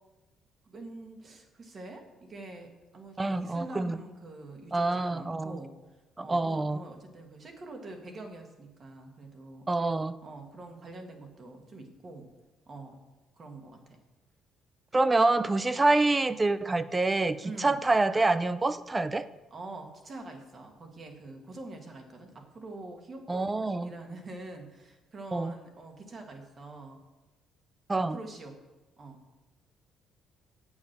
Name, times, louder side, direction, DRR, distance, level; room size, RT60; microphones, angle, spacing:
voice 1, 0.7-5.7 6.2-9.7 10.2-12.3 12.7-13.0 13.4-14.0 17.4-17.9 19.5-23.2 23.8-27.0 28.0-28.6 29.0-29.2, right 2 dB, 35° right, 4 dB, 1.7 m, -45 dB
voice 2, 3.2-4.0 4.7-5.6 6.2-6.8 9.7-10.2 14.9-19.3 23.3-23.9 25.3-25.5 27.9-28.2, right 2 dB, 15° right, 14 dB, 0.4 m, -26 dB
8.4 x 7.1 x 6.6 m, 1.1 s
cardioid pair, 130°, 0 cm